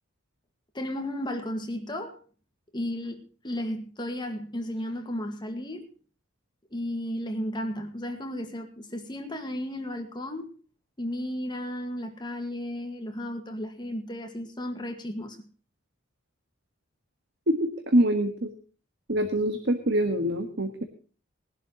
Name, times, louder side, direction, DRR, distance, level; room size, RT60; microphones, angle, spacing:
voice 1, 0.7-2.2 2.7-5.9 6.7-10.5 11.0-15.5, left 1 dB, 20° left, 1.8 m, -34 dB
voice 2, 17.5-18.5 19.1-20.8, right 1 dB, 60° right, 1.6 m, -25 dB
21.0 x 11.5 x 3.1 m
head